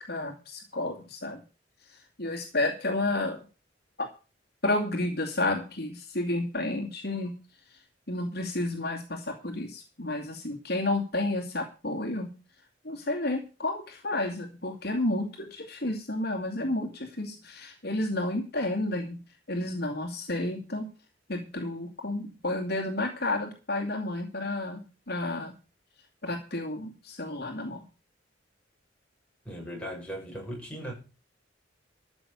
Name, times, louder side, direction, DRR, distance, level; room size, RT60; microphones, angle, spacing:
voice 1, 0.1-1.4 2.2-3.4 4.0-4.1 4.6-7.3 8.1-12.3 12.8-19.2 19.5-20.9 21.3-25.5 26.2-27.8, left 2 dB, 55° left, 2.4 m, -31 dB
voice 2, 29.4-30.9, equal, 5° left, 6.5 m, -38 dB
14.0 x 6.3 x 8.1 m
head